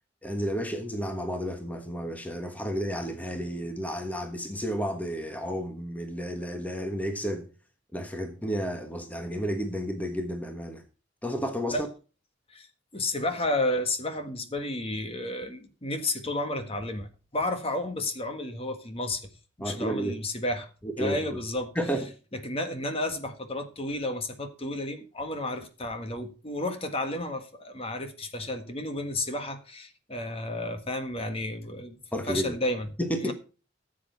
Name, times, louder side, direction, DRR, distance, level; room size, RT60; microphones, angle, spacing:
voice 1, 0.2-7.5 7.9-10.8 11.2-11.8 19.6-20.1 20.8-21.4 21.7-22.1 32.1-32.6 33.0-33.3, equal, 10° left, 1.3 m, -31 dB
voice 2, 12.9-19.3 19.6-20.7 21.0-21.7 22.3-32.0 32.3-33.3, left 1 dB, 30° left, 1.6 m, -32 dB
15.0 x 7.8 x 4.6 m
head